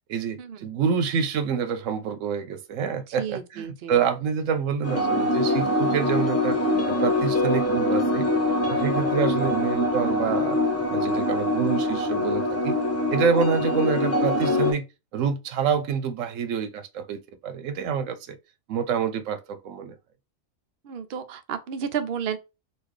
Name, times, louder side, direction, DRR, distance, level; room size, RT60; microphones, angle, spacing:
voice 1, 0.1-6.6 6.9-8.3 8.7-10.6 10.9-12.7 13.1-14.9 15.1-18.4 18.7-20.0, right 7 dB, 85° right, 1.0 m, -27 dB
voice 2, 3.2-4.0 20.8-22.4, right 7 dB, 60° right, 0.7 m, -32 dB
sound 1, 4.8-14.7, left 1 dB, 15° left, 0.8 m, -24 dB
4.3 x 2.3 x 3.1 m
omnidirectional pair, 1.3 m